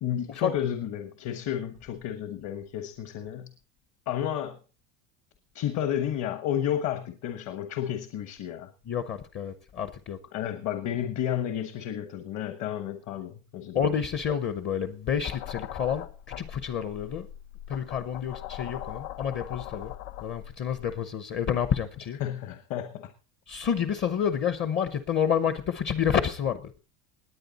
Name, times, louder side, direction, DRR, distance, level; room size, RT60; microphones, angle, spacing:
voice 1, 0.0-3.5 4.1-4.6 5.5-8.7 10.3-13.9 22.2-23.1, left 10 dB, 45° left, 1.3 m, -32 dB
voice 2, 8.9-10.2 13.7-17.3 17.7-19.9 20.2-22.2 23.5-26.7, left 8 dB, 30° left, 0.8 m, -29 dB
sound 1, 15.2-21.0, left 12 dB, 90° left, 1.3 m, -41 dB
20.0 x 8.8 x 4.1 m
cardioid pair, 170°, 39 cm